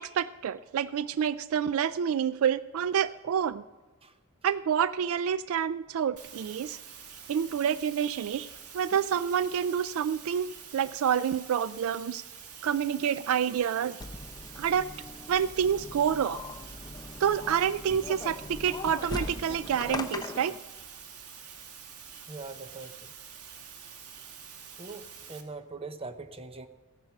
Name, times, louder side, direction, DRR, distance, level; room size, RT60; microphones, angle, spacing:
voice 1, 0.0-3.6 4.4-6.8 7.3-8.5 8.7-12.2 12.6-14.0 14.6-14.9 15.3-16.4 17.2-20.5, right 8 dB, 70° right, 16 dB, 0.3 m, -28 dB
sound 1, 6.2-25.4, right 7 dB, 90° right, 1.6 m, -47 dB
sound 2, 14.0-20.6, left 2 dB, 15° left, 0.6 m, -40 dB
voice 2, 22.3-22.9 24.8-26.7, right 3 dB, 25° right, 9 dB, 0.8 m, -42 dB
15.0 x 10.5 x 5.8 m, 1.2 s
head